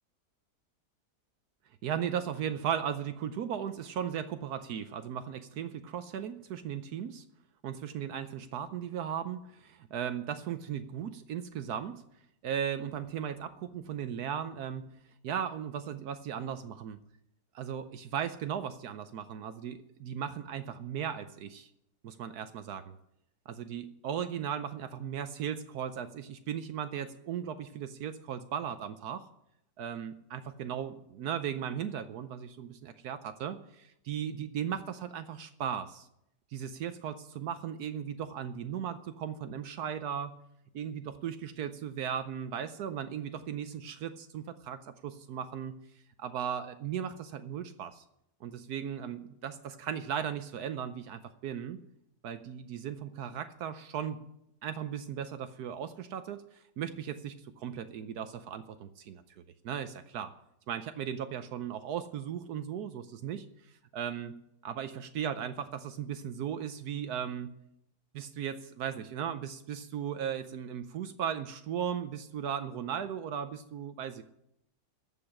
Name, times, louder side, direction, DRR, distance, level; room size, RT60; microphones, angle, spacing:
voice 1, 1.8-7.2 7.6-12.0 12.4-14.9 15.2-17.0 17.5-21.7 22.0-23.0 23.5-29.2 29.8-36.1 36.5-40.3 40.7-45.7 46.2-48.0 48.4-51.8 52.2-54.2 54.6-59.2 59.6-60.3 60.7-63.5 63.9-64.3 64.6-67.5 68.1-74.2, right 8 dB, 70° right, 10 dB, 1.2 m, -37 dB
14.5 x 5.5 x 9.9 m, 0.80 s
omnidirectional pair, 1.8 m